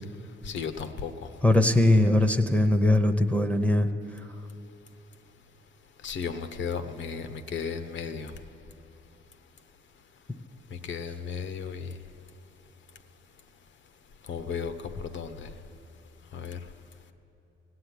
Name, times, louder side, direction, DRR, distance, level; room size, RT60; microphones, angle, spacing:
voice 1, 0.4-1.3 6.0-8.3 10.7-11.9 14.3-15.5 16.3-16.6, left 6 dB, 70° left, 10 dB, 1.0 m, -35 dB
voice 2, 1.4-3.9 4.2-4.3, left 1 dB, 5° left, 8 dB, 0.8 m, -21 dB
18.0 x 7.8 x 10.0 m, 3.0 s
cardioid pair, 90°, 20 cm